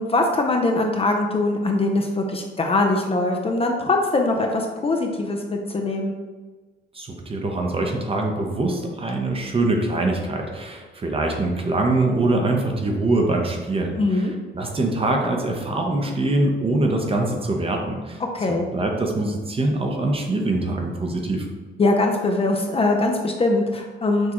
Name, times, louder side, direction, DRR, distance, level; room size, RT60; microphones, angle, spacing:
voice 1, 0.0-6.1 14.0-14.3 18.3-18.7 21.8-24.3, left 2 dB, 30° left, 2 dB, 0.5 m, -22 dB
voice 2, 6.9-18.2 18.7-21.5, right 2 dB, 30° right, 2 dB, 0.7 m, -23 dB
6.1 x 2.3 x 3.0 m, 1.3 s
cardioid pair, 90°, 20 cm